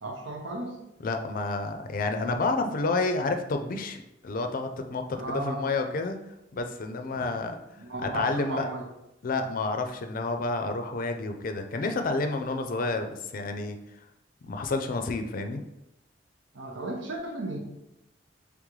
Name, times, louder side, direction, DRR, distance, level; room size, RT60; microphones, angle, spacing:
voice 1, 0.0-0.8 5.1-5.6 7.1-7.3 7.8-8.9 16.5-17.6, right 1 dB, 90° right, 1 dB, 0.8 m, -34 dB
voice 2, 1.0-6.2 6.5-7.5 8.0-8.7 9.2-13.8 14.4-15.6, left 3 dB, 50° left, 6 dB, 0.4 m, -30 dB
3.7 x 3.5 x 3.1 m, 0.89 s
head